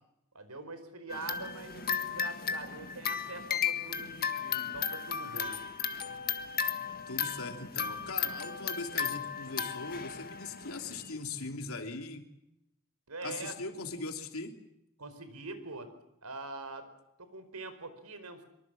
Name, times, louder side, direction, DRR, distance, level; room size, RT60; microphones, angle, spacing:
voice 1, 0.3-5.6 13.1-13.5 15.0-15.9 16.2-16.9 17.2-18.4, right 3 dB, 90° right, 10 dB, 4.6 m, -44 dB
sound 1, 1.1-11.1, left 7 dB, 45° left, 1.8 m, -35 dB
voice 2, 7.1-12.2 13.2-14.5, left 3 dB, 70° left, 5 dB, 3.0 m, -40 dB
24.0 x 23.5 x 7.5 m, 0.83 s
head